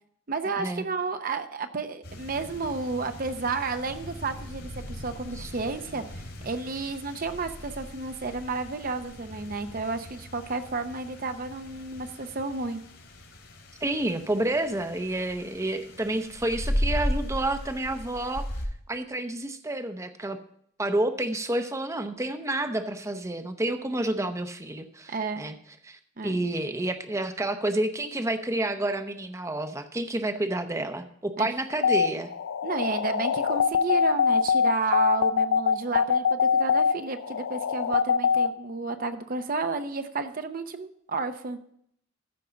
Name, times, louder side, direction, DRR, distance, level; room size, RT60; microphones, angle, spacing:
voice 1, 0.3-12.8 25.1-25.4 26.2-26.4 31.4-31.5 32.6-41.6, right 3 dB, 45° right, 8 dB, 0.8 m, -31 dB
sound 1, 2.0-18.7, equal, 70° left, 2.9 m, -37 dB
voice 2, 13.8-18.4 18.9-20.4 20.8-25.6 25.8-32.3, right 1 dB, 15° right, 8 dB, 0.7 m, -29 dB
sound 2, 31.7-38.5, left 6 dB, 90° left, 0.4 m, -23 dB
14.0 x 5.3 x 5.7 m, 0.68 s
head